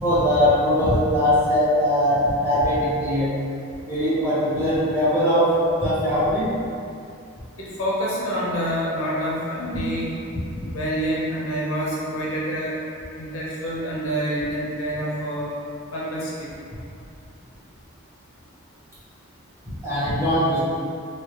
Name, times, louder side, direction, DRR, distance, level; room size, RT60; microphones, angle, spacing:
voice 1, 0.0-3.3 3.9-5.5 5.8-6.5 19.8-20.6, equal, 10° right, -13 dB, 1.1 m, -20 dB
voice 2, 7.6-10.2 10.6-12.8 13.2-15.5 15.9-16.5, equal, 80° left, -6 dB, 0.6 m, -27 dB
3.3 x 2.7 x 2.9 m, 2.4 s
head